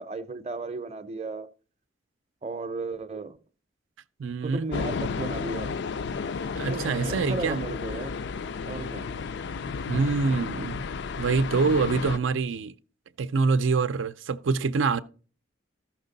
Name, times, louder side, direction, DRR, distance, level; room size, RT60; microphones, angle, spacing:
voice 1, 0.0-1.5 2.4-3.4 4.4-5.7 6.6-8.2 8.7-9.1, right 3 dB, 35° right, 0.6 m, -35 dB
voice 2, 4.2-4.7 6.6-7.6 9.9-10.8 11.2-12.7 13.2-15.0, right 4 dB, 90° right, 0.5 m, -25 dB
sound 1, 4.7-12.2, left 5 dB, 65° left, 0.4 m, -32 dB
14.0 x 6.0 x 3.9 m
head